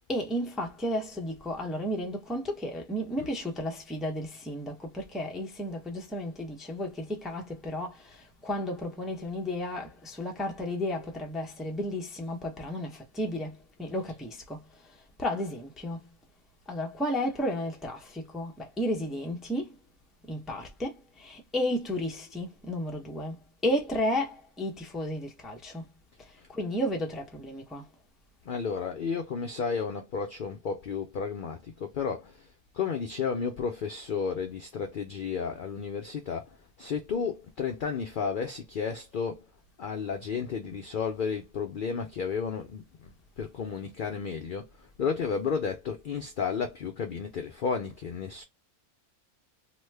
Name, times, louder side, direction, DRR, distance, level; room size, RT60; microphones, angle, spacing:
voice 1, 0.1-16.1 16.7-19.8 20.3-25.9 26.2-27.9, left 1 dB, ahead, 0.4 m, -33 dB
voice 2, 28.5-32.5 32.7-36.5 36.8-39.5 39.8-48.4, left 6 dB, 80° left, 0.4 m, -32 dB
3.1 x 2.1 x 3.2 m
omnidirectional pair, 1.5 m